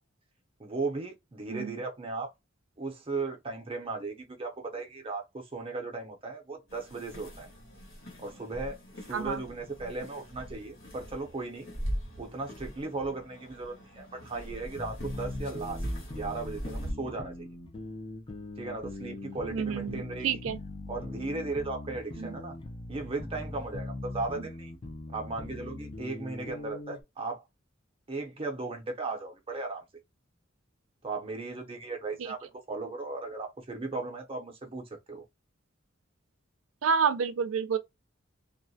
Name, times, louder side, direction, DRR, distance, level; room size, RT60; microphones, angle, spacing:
voice 1, 0.6-2.3 2.8-7.5 8.2-8.8 9.1-11.7 12.2-15.8 16.1-17.5 18.6-20.3 20.9-22.6 22.9-24.7 25.1-27.4 28.1-29.8 31.0-35.2, right 3 dB, 30° right, 0.6 m, -36 dB
sound 1, 6.7-16.9, equal, 75° left, 1.2 m, -41 dB
voice 2, 9.1-9.4 19.5-20.6 22.2-22.4 32.2-32.3 36.8-37.8, right 6 dB, 85° right, 0.4 m, -29 dB
sound 2, 14.7-27.0, left 2 dB, 25° left, 0.5 m, -41 dB
2.3 x 2.1 x 2.6 m
head